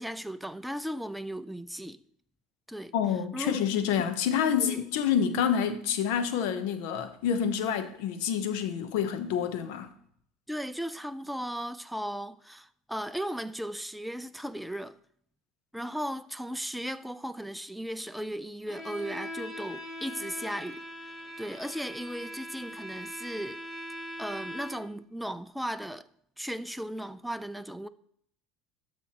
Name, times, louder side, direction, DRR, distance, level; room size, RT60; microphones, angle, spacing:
voice 1, 0.0-2.0 2.7-2.9 3.3-3.6 4.5-4.8 10.5-15.0 15.7-23.6 24.2-26.1 26.4-27.9, equal, ahead, 0.4 m, -36 dB
voice 2, 2.9-9.9, left 8 dB, 75° left, 0.8 m, -28 dB
Bowed string instrument, 18.7-25.0, equal, 30° left, 2.2 m, -41 dB
12.5 x 4.6 x 2.9 m
supercardioid pair, 95°, 0 cm